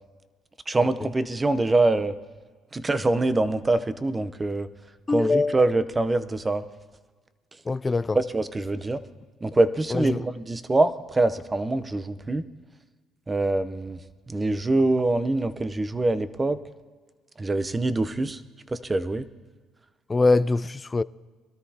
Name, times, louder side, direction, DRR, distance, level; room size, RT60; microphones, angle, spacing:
voice 1, 0.7-2.1 2.7-4.7 5.1-6.6 8.1-9.0 9.4-12.4 13.3-14.0 14.3-16.6 17.4-18.4 18.7-19.3, right 2 dB, 20° right, 0.7 m, -24 dB
voice 2, 5.1-5.6 7.7-8.2 9.9-10.3 20.1-21.0, left 3 dB, 20° left, 0.3 m, -23 dB
22.5 x 13.0 x 2.8 m
cardioid pair, 100°, 0 cm